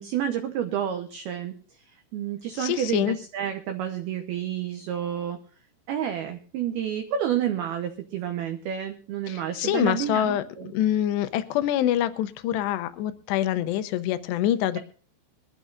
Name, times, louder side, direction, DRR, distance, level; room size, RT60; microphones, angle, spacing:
voice 1, 0.0-1.6 2.1-5.4 5.9-10.7, right 10 dB, 80° right, 6 dB, 2.2 m, -30 dB
voice 2, 2.5-3.2 9.3-10.4 10.7-14.8, left 12 dB, 85° left, 11 dB, 2.4 m, -25 dB
22.0 x 12.5 x 2.5 m, 0.41 s
omnidirectional pair, 5.8 m